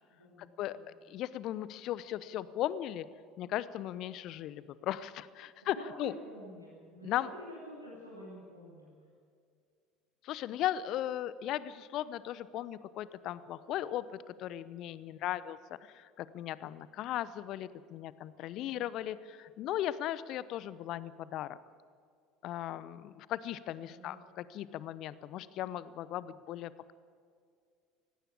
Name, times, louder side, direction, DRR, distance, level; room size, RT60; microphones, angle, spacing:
voice 1, 0.4-0.8 1.1-3.1 3.4-6.1 7.0-7.3 10.2-21.6 22.4-26.9, left 12 dB, 50° left, 17 dB, 0.8 m, -37 dB
voice 2, 5.6-8.9 18.5-18.8 23.8-24.2, equal, 90° right, -5 dB, 3.4 m, -48 dB
19.0 x 16.0 x 8.6 m, 2.2 s
figure-of-eight pair, 65°, 0 cm